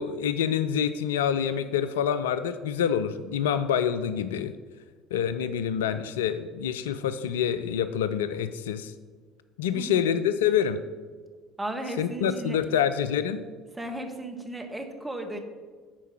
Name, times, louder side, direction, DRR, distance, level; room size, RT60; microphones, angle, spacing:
voice 1, 0.0-4.5 5.1-8.9 9.6-10.8 12.0-13.4, left 8 dB, 70° left, 11 dB, 0.3 m, -26 dB
voice 2, 9.7-10.0 11.6-12.7 13.7-15.4, right 2 dB, 10° right, 4 dB, 1.4 m, -35 dB
10.5 x 4.6 x 6.0 m, 1.5 s
figure-of-eight pair, 60°, 0 cm